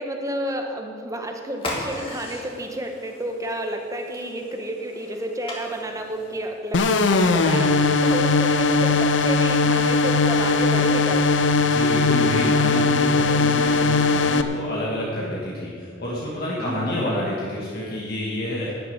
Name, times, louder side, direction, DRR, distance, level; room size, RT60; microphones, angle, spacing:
voice 1, 0.0-11.3 16.6-16.8, right 1 dB, 20° right, 3 dB, 1.3 m, -31 dB
sound 1, 1.5-6.7, left 1 dB, 30° left, 2.4 m, -38 dB
sound 2, 6.7-14.4, left 3 dB, 70° left, 0.7 m, -19 dB
voice 2, 11.6-18.8, left 1 dB, 55° left, -5 dB, 2.1 m, -28 dB
12.0 x 7.1 x 9.3 m, 2.2 s
head